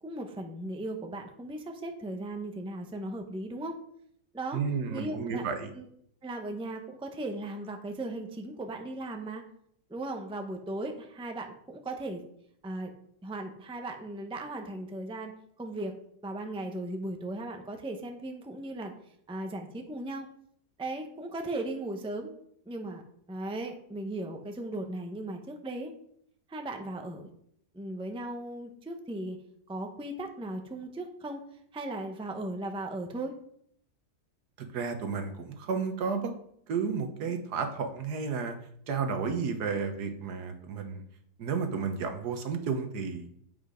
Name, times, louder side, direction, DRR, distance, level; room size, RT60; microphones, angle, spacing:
voice 1, 0.0-3.7 4.3-4.6 4.9-5.4 5.7-5.9 6.2-9.4 9.9-12.2 12.6-12.9 13.2-15.3 15.6-16.0 16.2-18.9 19.3-20.3 20.8-22.3 22.7-23.0 23.3-25.9 26.5-27.3 27.7-29.4 29.7-31.4 31.7-33.3, right 2 dB, 5° right, 4 dB, 0.6 m, -37 dB
voice 2, 4.5-5.7 34.6-36.3 36.7-38.5 38.9-41.0 41.4-43.3, right 5 dB, 70° right, 6 dB, 1.6 m, -32 dB
8.2 x 5.5 x 5.1 m, 0.69 s
omnidirectional pair, 1.8 m